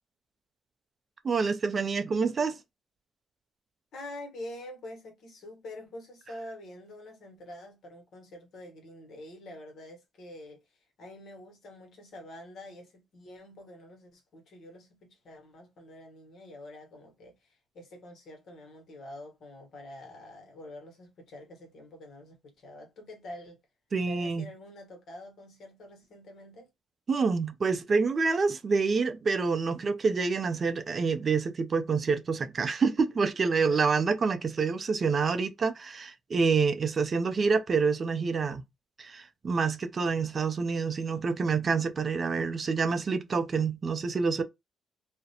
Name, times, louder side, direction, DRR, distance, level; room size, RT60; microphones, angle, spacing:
voice 1, 1.2-2.6 23.9-24.5 27.1-38.6 39.0-44.4, right 4 dB, 40° right, 0.4 m, -27 dB
voice 2, 3.9-23.6 24.1-26.7 33.5-33.9, left 1 dB, 65° left, 1.0 m, -46 dB
2.4 x 2.1 x 2.8 m
cardioid pair, 90°, 0 cm